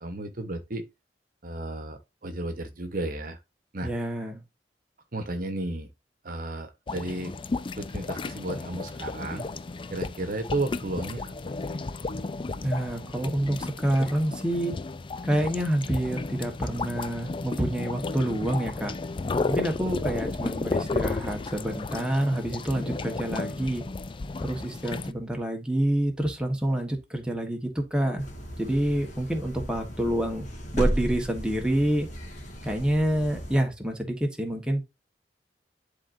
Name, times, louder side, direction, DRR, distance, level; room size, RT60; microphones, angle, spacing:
voice 1, 0.0-0.8 1.4-3.4 3.7-3.9 5.1-5.9 6.2-7.3 7.8-9.5 9.9-11.8, right 2 dB, 55° right, 1.1 m, -33 dB
voice 2, 3.8-4.4 12.6-14.7 15.2-18.9 19.5-23.8 24.4-28.3 28.6-30.5 30.7-32.1 32.6-34.8, right 1 dB, 5° right, 1.3 m, -27 dB
sound 1, 6.9-25.1, left 3 dB, 30° left, 0.4 m, -33 dB
sound 2, 28.2-33.6, equal, 45° left, 2.0 m, -34 dB
11.0 x 3.8 x 2.6 m
head